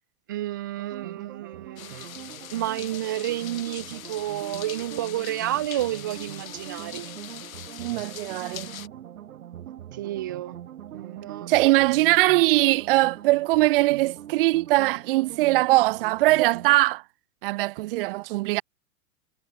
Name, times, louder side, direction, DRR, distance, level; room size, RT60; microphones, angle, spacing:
voice 1, 0.3-2.1 2.5-7.1 10.0-10.6 10.9-11.5, right 14 dB, 15° right, 0.3 m, -30 dB
sound 1, 0.8-16.7, right 11 dB, 85° right, 4.8 m, -42 dB
sound 2, 1.8-8.9, left 11 dB, 85° left, 7.6 m, -42 dB
voice 2, 7.8-8.9 11.5-17.0 17.4-18.6, right 20 dB, 40° right, 1.3 m, -21 dB
supercardioid pair, 165°, 40 cm